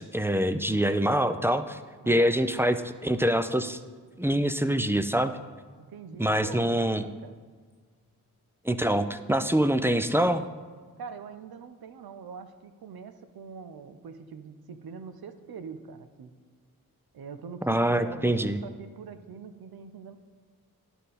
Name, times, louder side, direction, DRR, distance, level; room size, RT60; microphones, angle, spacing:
voice 1, 0.0-1.8 2.1-3.8 4.2-5.3 6.2-7.0 8.7-10.4 17.6-18.6, right 1 dB, 5° right, 10 dB, 0.4 m, -25 dB
voice 2, 2.0-2.3 5.9-7.4 11.0-16.3 17.1-20.2, right 6 dB, 70° right, 10 dB, 0.7 m, -43 dB
11.0 x 3.9 x 4.1 m, 1.5 s
cardioid pair, 40°, 39 cm